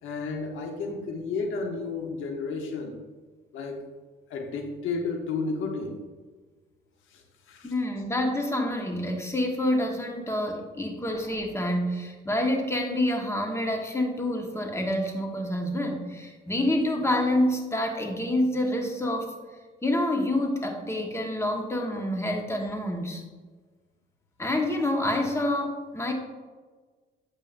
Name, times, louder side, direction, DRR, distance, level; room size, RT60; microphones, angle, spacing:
voice 1, 0.0-3.0 3.5-3.8 4.3-6.0 7.1-7.7, left 4 dB, 85° left, 3 dB, 1.0 m, -32 dB
voice 2, 7.6-19.3 19.8-23.2 24.4-26.1, left 1 dB, 15° left, 2 dB, 1.4 m, -27 dB
8.9 x 6.9 x 2.6 m, 1.4 s
cardioid pair, 90°, 20 cm